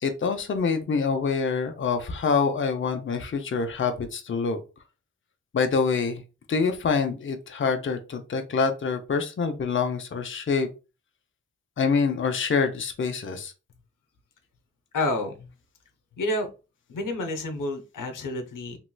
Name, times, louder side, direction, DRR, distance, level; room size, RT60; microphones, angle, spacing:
voice 1, 0.0-4.6 5.5-6.2 6.5-10.7 11.8-13.5, left 5 dB, 40° left, 6 dB, 0.6 m, -26 dB
voice 2, 14.9-15.5 16.2-16.5 16.9-18.8, left 1 dB, 85° left, 5 dB, 0.7 m, -29 dB
3.0 x 2.9 x 2.2 m, 0.30 s
cardioid pair, 65°, 31 cm